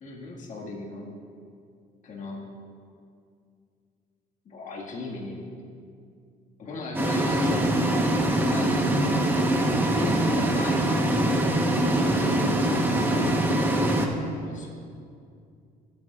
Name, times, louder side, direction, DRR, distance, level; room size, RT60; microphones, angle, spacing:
voice 1, 0.0-1.1 2.0-2.4 4.5-5.4 6.6-7.8 8.4-8.9 9.9-10.9 11.9-14.1 14.4-14.7, left 2 dB, 50° left, -3 dB, 2.0 m, -38 dB
sound 1, 6.9-14.1, right 1 dB, 10° right, 1.2 m, -23 dB
22.5 x 8.8 x 2.5 m, 2.3 s
cardioid pair, 110°, 17 cm